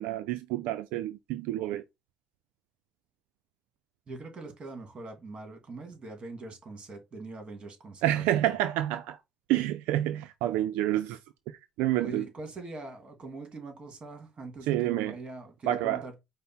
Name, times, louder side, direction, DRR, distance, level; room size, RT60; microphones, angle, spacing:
voice 1, 0.0-1.8 8.0-9.2 9.5-11.2 11.5-12.2 14.7-15.1 15.7-16.0, right 13 dB, 80° right, 0.3 m, -28 dB
voice 2, 4.1-8.5 12.0-16.1, right 3 dB, 40° right, 1.9 m, -42 dB
4.8 x 2.0 x 4.3 m
supercardioid pair, 70°, 3 cm